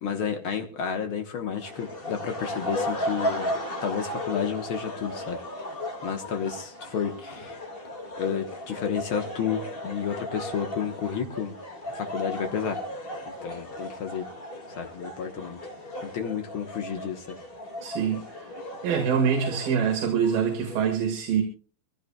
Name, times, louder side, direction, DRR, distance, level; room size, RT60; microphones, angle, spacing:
voice 1, 0.0-5.4 6.0-7.7 8.2-11.5 11.9-12.8 13.4-14.3 14.7-15.6 16.0-17.4, left 7 dB, 75° left, 1.2 m, -31 dB
sound 1, 1.5-20.9, left 1 dB, 25° left, 1.5 m, -35 dB
voice 2, 17.8-18.5 18.8-21.4, right 7 dB, 80° right, 3.6 m, -25 dB
24.0 x 16.0 x 2.3 m
omnidirectional pair, 4.2 m